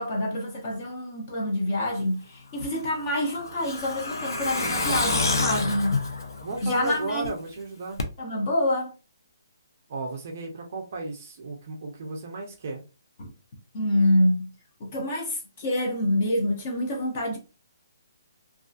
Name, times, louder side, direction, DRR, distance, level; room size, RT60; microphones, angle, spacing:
voice 1, 0.0-6.0 6.6-7.3 8.2-8.9 13.2-13.3 13.7-14.5 14.8-17.4, left 1 dB, 25° left, 0.5 m, -26 dB
Truck, 2.6-7.3 7.6-7.7 8.0-8.1, left 3 dB, 70° left, 0.6 m, -28 dB
voice 2, 4.6-5.9 6.4-8.0 9.9-12.8, right 2 dB, 30° right, 0.4 m, -35 dB
2.6 x 2.4 x 2.3 m
hypercardioid pair, 180°, 2 cm